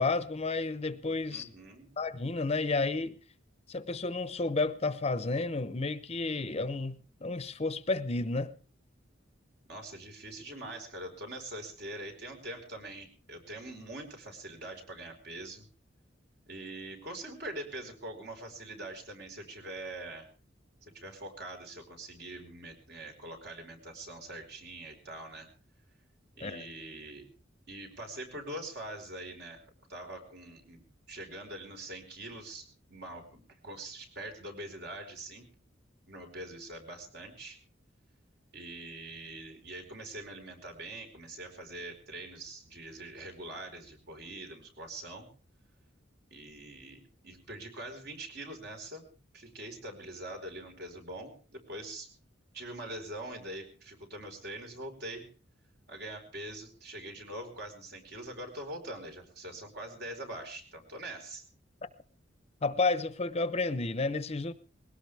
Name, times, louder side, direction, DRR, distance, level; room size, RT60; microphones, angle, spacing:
voice 1, 0.0-1.5 2.0-3.2 3.7-8.5 26.4-26.6 62.6-64.5, left 3 dB, 35° left, 0.8 m, -31 dB
voice 2, 1.3-1.9 9.7-15.6 16.5-20.3 20.8-25.5 26.3-27.2 27.7-29.6 29.9-30.8 31.1-35.4 36.1-37.6 38.5-45.3 46.3-49.0 49.3-52.1 52.5-55.3 55.9-61.4, right 1 dB, 60° right, 4.7 m, -43 dB
21.0 x 18.0 x 3.5 m
head